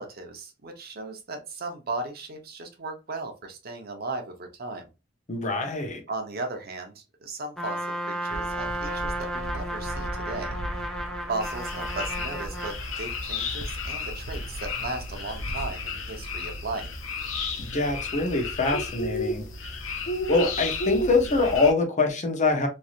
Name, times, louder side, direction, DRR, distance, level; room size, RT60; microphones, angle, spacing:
voice 1, 0.0-4.9 6.1-10.6 11.3-16.9, right 3 dB, 50° right, 0.7 m, -36 dB
voice 2, 5.3-6.0 17.6-19.4 20.3-22.7, left 3 dB, 40° left, 0.8 m, -24 dB
Trumpet, 7.6-12.8, right 1 dB, ahead, 0.5 m, -33 dB
sound 1, 8.3-15.7, right 1 dB, 90° right, 0.6 m, -38 dB
sound 2, 11.4-21.7, left 3 dB, 75° left, 0.7 m, -32 dB
3.1 x 2.6 x 2.4 m
head